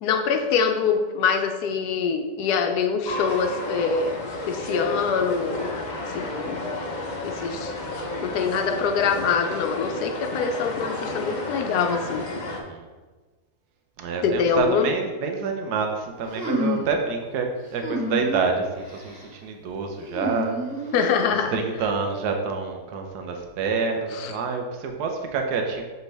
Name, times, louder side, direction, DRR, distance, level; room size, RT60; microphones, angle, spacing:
voice 1, 0.0-4.2 4.5-5.8 6.1-6.6 7.2-7.7 8.2-12.2 14.2-14.9 20.9-21.6 24.1-24.3, left 6 dB, 75° left, 5 dB, 1.2 m, -24 dB
sound 1, 3.0-12.6, left 2 dB, 45° left, 0.6 m, -32 dB
voice 2, 12.5-12.9 14.0-20.6 20.8-20.9 21.5-25.8, right 4 dB, 75° right, 3 dB, 1.3 m, -27 dB
sound 2, 16.3-17.0 17.8-18.4 18.8-19.2 20.1-21.3, equal, 5° right, 1.3 m, -29 dB
6.8 x 4.6 x 3.3 m, 1.3 s
omnidirectional pair, 1.8 m